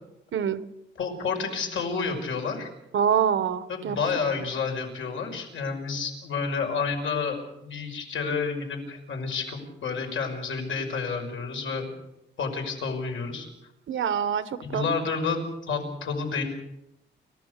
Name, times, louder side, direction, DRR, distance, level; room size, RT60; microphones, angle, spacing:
voice 1, 1.0-2.7 3.7-11.9 12.4-13.5 14.6-15.4 15.7-16.4, left 5 dB, 80° left, 3 dB, 5.8 m, -30 dB
voice 2, 2.9-4.0 13.9-14.8, right 8 dB, 80° right, 13 dB, 1.2 m, -25 dB
29.5 x 15.0 x 6.7 m, 0.85 s
wide cardioid pair, 175°, 20 cm